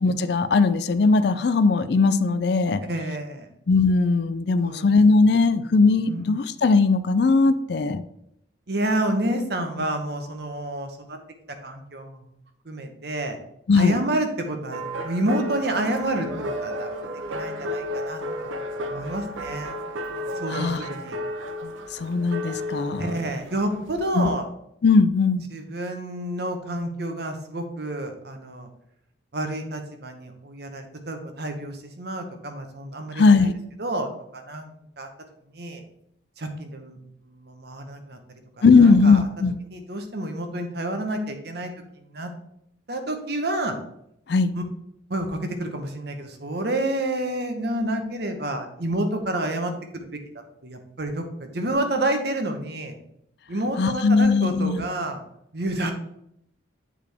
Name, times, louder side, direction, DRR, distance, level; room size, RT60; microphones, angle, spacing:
voice 1, 0.0-2.8 3.7-8.0 13.7-14.0 20.5-20.8 21.6-23.1 24.1-24.3 24.8-25.4 33.1-33.5 38.6-39.6 44.3-44.5 53.8-54.8, left 4 dB, 60° left, 13 dB, 0.4 m, -19 dB
voice 2, 2.9-3.5 4.6-4.8 6.1-6.3 8.7-11.2 11.6-12.2 12.6-13.4 13.7-16.9 17.3-19.7 20.4-21.2 23.0-24.5 25.5-28.7 29.3-33.5 33.8-34.7 35.0-35.1 35.5-35.8 36.4-37.0 37.3-38.2 38.6-39.2 39.7-41.7 42.0-42.3 42.9-43.7 44.5-44.6 45.1-49.7 50.1-50.2 50.6-52.9 53.5-55.2 55.5-55.9, right 1 dB, 55° right, 6 dB, 1.0 m, -29 dB
sound 1, 14.7-23.9, equal, 90° right, 0.7 m, -33 dB
8.3 x 4.8 x 3.5 m, 0.75 s
head